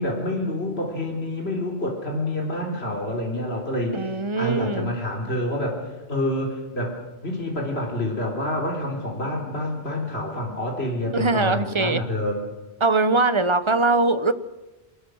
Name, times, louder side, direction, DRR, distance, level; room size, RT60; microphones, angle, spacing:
voice 1, 0.0-5.8 6.1-7.0 7.2-12.4, left 1 dB, 70° left, 0 dB, 3.9 m, -27 dB
voice 2, 3.9-4.9 11.1-12.0 12.8-14.3, right 3 dB, 30° right, 13 dB, 0.9 m, -21 dB
23.0 x 20.0 x 6.4 m, 1.1 s
omnidirectional pair, 1.1 m